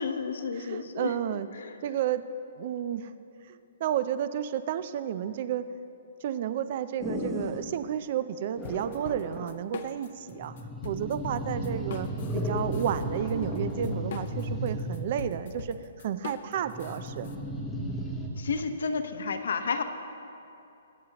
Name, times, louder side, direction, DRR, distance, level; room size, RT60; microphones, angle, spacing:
voice 1, 0.0-1.1 1.5-1.7 18.4-19.8, left 5 dB, 65° left, 7 dB, 1.0 m, -31 dB
voice 2, 0.6-1.5 1.8-2.2 2.6-3.1 3.5-5.7 6.2-10.6 10.8-17.3, right 10 dB, 35° right, 13 dB, 0.4 m, -32 dB
sound 1, 7.0-7.7 8.6-9.5 10.3-15.2 16.5-18.3, equal, ahead, 0.9 m, -34 dB
sound 2, 8.6-10.3 10.6-17.4, left 6 dB, 40° left, 0.7 m, -42 dB
22.0 x 9.5 x 2.9 m, 2.7 s
hypercardioid pair, 175°, 0 cm